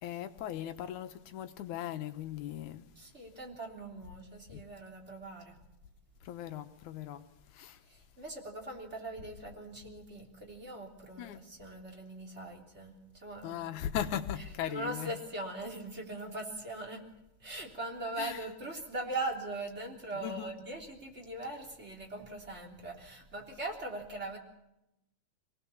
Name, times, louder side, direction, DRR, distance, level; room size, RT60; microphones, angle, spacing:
voice 1, 0.0-2.9 4.5-4.6 6.2-7.2 7.5-7.8 11.2-11.4 13.4-15.1 18.2-18.4 20.1-20.5, left 10 dB, 85° left, 2.5 m, -38 dB
voice 2, 2.9-5.6 7.8-13.6 14.7-17.0 17.4-24.4, right 2 dB, 20° right, 3.5 m, -41 dB
24.0 x 18.5 x 7.1 m
omnidirectional pair, 3.3 m